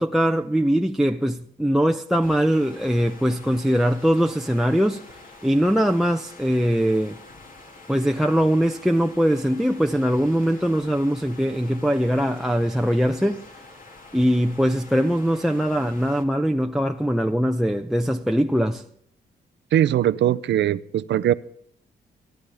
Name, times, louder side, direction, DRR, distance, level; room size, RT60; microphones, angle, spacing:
voice 1, 0.0-5.0 5.4-7.2 7.9-13.4 14.1-18.8, equal, ahead, 0.7 m, -21 dB
sound 1, 2.2-16.3, left 3 dB, 45° left, 2.3 m, -46 dB
voice 2, 19.7-21.3, right 11 dB, 70° right, 0.6 m, -20 dB
28.5 x 10.5 x 3.5 m
supercardioid pair, 55°, 19 cm